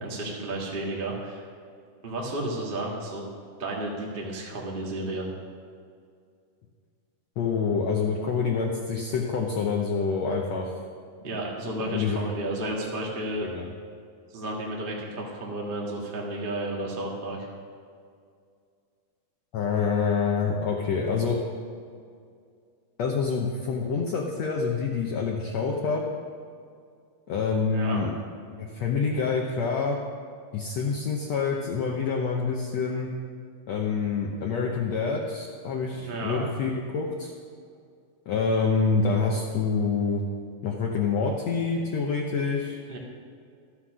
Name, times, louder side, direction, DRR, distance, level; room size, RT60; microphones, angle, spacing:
voice 1, 0.0-1.4 2.0-3.2 3.6-5.3 11.2-13.5 14.3-17.5 27.6-28.0 35.9-36.4 42.9-43.0, right 2 dB, 40° right, -3 dB, 0.7 m, -32 dB
voice 2, 7.4-10.7 11.8-12.3 12.6-12.7 13.4-13.7 19.5-21.4 23.0-26.0 27.3-28.1 28.5-30.0 30.5-33.1 33.7-37.3 38.3-40.2 40.6-42.8, left 5 dB, 80° left, -1 dB, 1.5 m, -27 dB
13.5 x 9.7 x 6.2 m, 2.2 s
omnidirectional pair, 4.4 m